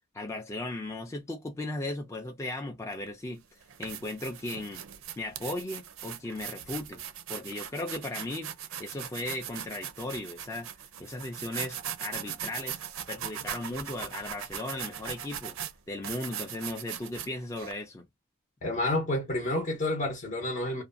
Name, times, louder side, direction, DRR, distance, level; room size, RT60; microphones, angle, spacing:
voice 1, 0.1-3.4 3.8-4.9 5.2-7.0 7.3-8.5 8.8-10.7 11.0-12.8 13.1-15.6 15.9-18.1, left 2 dB, 15° left, 0.3 m, -36 dB
sound 1, 2.9-3.1 3.6-17.7, right 9 dB, 80° right, 0.4 m, -39 dB
voice 2, 18.6-20.8, left 1 dB, 40° left, 0.7 m, -29 dB
2.4 x 2.2 x 2.4 m
head